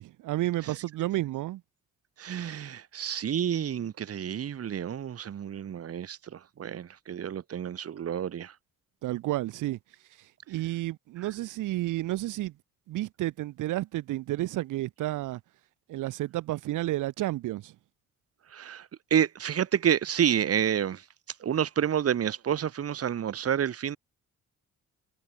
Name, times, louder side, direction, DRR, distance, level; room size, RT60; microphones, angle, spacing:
voice 1, 0.0-1.6 9.0-9.8 10.5-12.5 12.9-15.4 15.9-17.7, right 16 dB, 85° right, 2.0 m, -31 dB
voice 2, 2.2-8.6 11.2-11.3 18.5-21.1 21.4-24.0, right 9 dB, 50° right, 1.9 m, -29 dB
cardioid pair, 90°, 30 cm